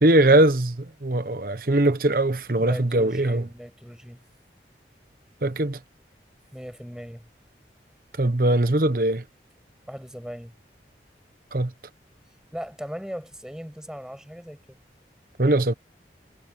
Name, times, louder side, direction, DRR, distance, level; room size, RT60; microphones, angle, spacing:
voice 1, 0.0-3.4 5.4-5.8 8.2-9.2 11.5-11.7 15.4-15.7, right 1 dB, 55° right, 1.1 m, -21 dB
voice 2, 2.6-4.2 6.5-7.3 9.8-10.5 12.5-14.8, equal, 5° right, 6.3 m, -38 dB
head